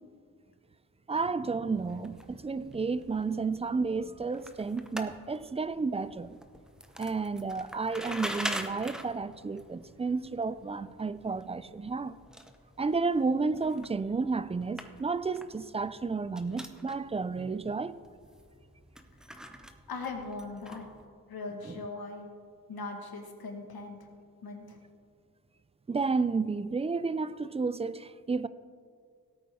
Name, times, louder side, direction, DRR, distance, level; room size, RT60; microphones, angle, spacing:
voice 1, 1.1-6.4 7.0-12.2 12.8-18.0 21.7-21.8 25.9-28.5, right 4 dB, 20° right, 0.3 m, -31 dB
sound 1, 1.7-21.0, equal, ahead, 0.8 m, -45 dB
voice 2, 19.9-20.9 21.3-22.3 22.7-24.1 24.4-24.8, left 3 dB, 85° left, 1.7 m, -40 dB
17.5 x 8.7 x 3.6 m
cardioid pair, 85°, 36 cm